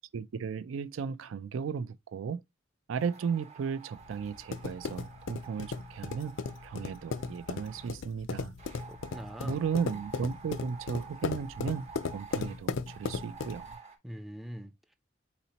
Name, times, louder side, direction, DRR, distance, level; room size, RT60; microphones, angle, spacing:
voice 1, 0.1-2.4 2.9-6.4 6.6-8.5 9.4-13.8, right 6 dB, 80° right, 0.4 m, -35 dB
sound 1, 2.9-8.0 8.6-14.0, right 6 dB, 30° right, 0.7 m, -50 dB
sound 2, 4.0-13.7, left 5 dB, 75° left, 0.4 m, -37 dB
voice 2, 8.9-9.6 14.0-14.9, equal, ahead, 0.3 m, -43 dB
4.1 x 4.1 x 2.8 m
head